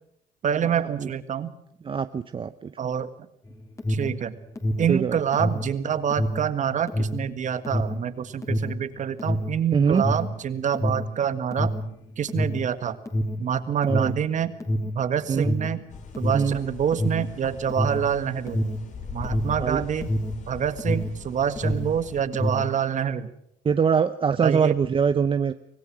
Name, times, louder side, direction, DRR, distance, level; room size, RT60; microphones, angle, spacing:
voice 1, 0.4-1.5 2.8-3.1 3.9-4.4 4.8-11.7 12.2-13.0 13.4-14.5 14.9-15.8 16.2-18.7 19.1-20.1 20.5-23.3 24.4-24.7, right 8 dB, 45° right, 12 dB, 1.7 m, -26 dB
voice 2, 1.8-2.7 4.9-5.2 9.7-10.0 13.8-14.1 15.3-15.5 16.3-16.6 19.6-19.8 23.6-25.5, right 6 dB, 30° right, 10 dB, 0.8 m, -23 dB
Alarm, 3.4-21.2 21.5-22.8, equal, 20° left, 3.2 m, -27 dB
sound 1, 15.9-22.2, left 6 dB, 45° left, 3.2 m, -41 dB
25.0 x 17.5 x 6.3 m, 0.74 s
cardioid pair, 110°, 17 cm